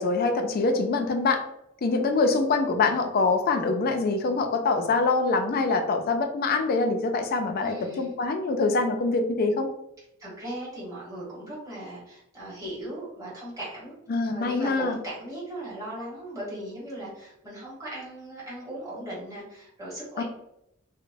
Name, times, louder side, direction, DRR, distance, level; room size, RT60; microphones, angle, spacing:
voice 1, 0.0-1.4 1.8-9.7 14.1-14.9 20.2-20.3, left 3 dB, 45° left, 4 dB, 0.3 m, -24 dB
voice 2, 7.6-8.2 10.2-14.0 14.3-20.2, right 1 dB, 15° right, -7 dB, 1.1 m, -38 dB
2.9 x 2.0 x 2.5 m, 0.82 s
head